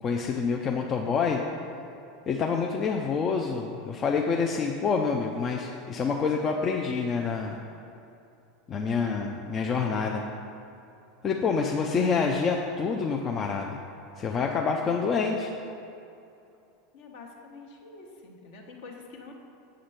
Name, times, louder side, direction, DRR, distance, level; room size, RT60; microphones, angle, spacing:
voice 1, 0.0-1.4 2.3-7.6 8.7-10.2 11.2-13.8 14.2-15.5, left 5 dB, 30° left, 1 dB, 0.5 m, -27 dB
voice 2, 16.9-19.3, left 3 dB, 55° left, 1 dB, 1.1 m, -46 dB
7.8 x 5.0 x 5.7 m, 2.7 s
figure-of-eight pair, 80°, 0 cm